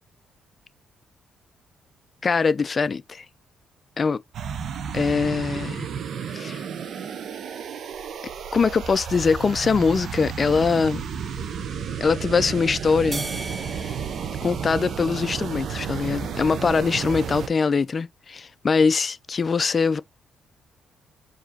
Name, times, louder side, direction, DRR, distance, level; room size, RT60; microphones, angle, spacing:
voice 1, 2.2-3.2 4.0-4.2 4.9-5.9 6.3-6.6 8.5-11.0 12.0-13.3 13.9-14.0 14.4-20.0, left 5 dB, 35° left, 0.4 m, -22 dB
sound 1, 4.3-17.5, right 7 dB, 65° right, 0.7 m, -32 dB
sound 2, 13.1-15.7, right 2 dB, 30° right, 0.8 m, -38 dB
4.8 x 2.8 x 2.8 m
cardioid pair, 90°, 0 cm